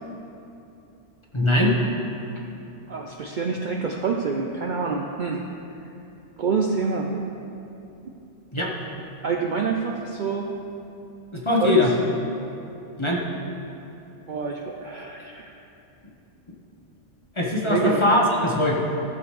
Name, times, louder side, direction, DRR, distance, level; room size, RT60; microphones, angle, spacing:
voice 1, 1.3-1.7 8.5-8.7 11.3-11.9 13.0-13.2 17.4-18.7, left 1 dB, 25° left, -2 dB, 1.0 m, -21 dB
voice 2, 2.9-5.4 6.4-7.1 9.2-10.5 11.6-11.8 14.3-15.6 17.6-18.1, right 5 dB, 55° right, 1 dB, 0.6 m, -27 dB
14.5 x 7.0 x 3.2 m, 2.8 s
omnidirectional pair, 1.2 m